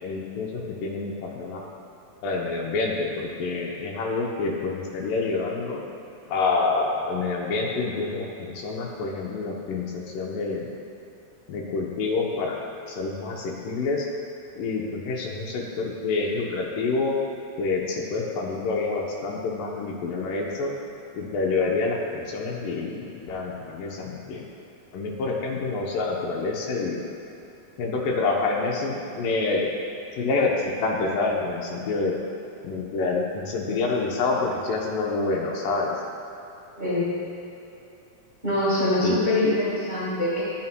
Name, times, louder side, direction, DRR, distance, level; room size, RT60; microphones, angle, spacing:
voice 1, 0.0-1.7 2.2-5.8 6.3-10.7 11.5-12.6 12.9-14.1 14.6-17.2 17.6-20.7 21.1-24.4 24.9-27.0 27.8-29.7 30.2-32.2 32.6-35.9 39.0-39.2, left 3 dB, 75° left, -1 dB, 2.3 m, -27 dB
voice 2, 36.8-37.1 38.4-40.4, left 1 dB, 80° right, -8 dB, 0.4 m, -24 dB
13.5 x 8.5 x 2.2 m, 2.8 s
omnidirectional pair, 4.3 m